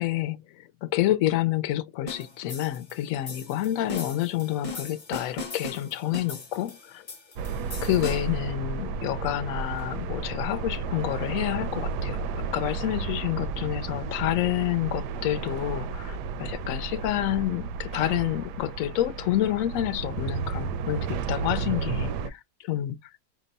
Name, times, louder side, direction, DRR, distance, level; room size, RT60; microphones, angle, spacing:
voice 1, 0.0-7.0 7.8-23.0, left 13 dB, 65° left, 0.9 m, -28 dB
sound 1, 2.1-8.4, left 3 dB, 30° left, 0.8 m, -39 dB
sound 2, 7.3-22.3, right 5 dB, 80° right, 1.2 m, -32 dB
5.2 x 2.1 x 4.0 m
omnidirectional pair, 1.8 m